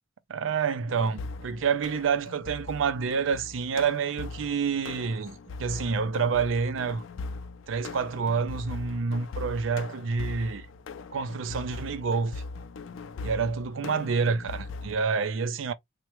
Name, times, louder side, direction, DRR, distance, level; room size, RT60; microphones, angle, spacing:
voice 1, 0.3-7.0 7.7-10.7 11.1-12.4 13.2-15.7, right 5 dB, 90° right, 0.4 m, -28 dB
sound 1, 0.9-15.0, left 3 dB, 85° left, 0.4 m, -40 dB
3.3 x 2.1 x 2.9 m
head